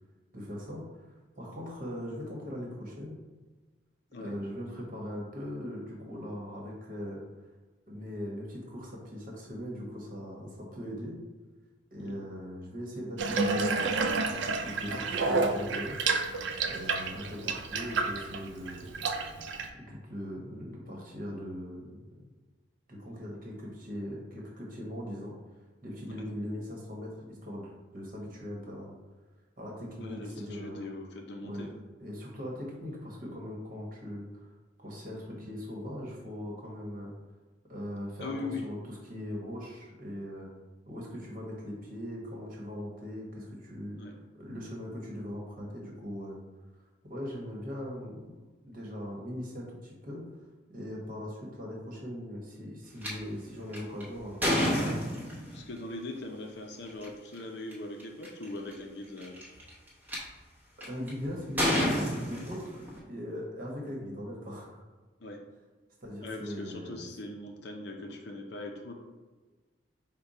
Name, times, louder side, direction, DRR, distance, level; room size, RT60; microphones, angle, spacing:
voice 1, 0.3-0.8 1.4-3.2 4.2-7.2 7.9-11.2 11.9-16.0 16.6-19.1 19.8-22.2 22.9-25.3 25.8-28.9 29.6-30.8 31.4-31.7 32.0-34.5 34.8-37.1 37.7-40.5 40.9-44.0 44.4-46.4 47.0-50.2 50.7-55.0 60.8-64.8 66.0-67.0, equal, 45° right, -2 dB, 1.1 m, -40 dB
Water tap faucet / Bathtub (filling or washing), 13.2-19.7, right 4 dB, 65° right, 0.4 m, -30 dB
voice 2, 30.0-31.7 38.2-38.6 44.0-44.1 55.5-59.4 65.2-65.4 66.2-68.9, left 2 dB, 55° left, 2 dB, 0.5 m, -40 dB
sound 1, 53.0-53.1 53.7-55.6 56.9-57.0 57.7-57.8 58.0-58.4 59.2-60.2 60.8-61.1 61.6-63.0, equal, 10° right, 0.9 m, -29 dB
5.1 x 2.2 x 4.1 m, 1.3 s
head